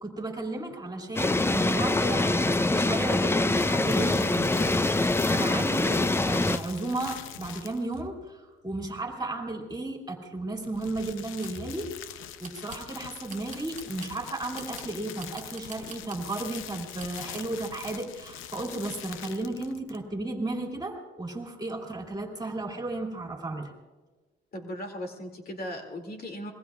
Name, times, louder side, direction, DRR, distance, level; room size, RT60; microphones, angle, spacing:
voice 1, 0.0-11.9 12.4-23.7, right 2 dB, 20° right, 1 dB, 2.6 m, -34 dB
sound 1, 1.2-6.6, left 2 dB, 10° left, 0.5 m, -24 dB
sound 2, 3.5-8.0 10.5-20.1, left 11 dB, 85° left, 0.7 m, -43 dB
sound 3, 11.1-11.6 12.4-12.9 13.3-14.2 14.5-16.3 17.0-17.4, right 6 dB, 40° right, 1.2 m, -48 dB
voice 2, 24.5-26.5, equal, 50° left, 2 dB, 2.6 m, -37 dB
26.5 x 21.5 x 2.4 m, 1.3 s
cardioid pair, 90°, 20 cm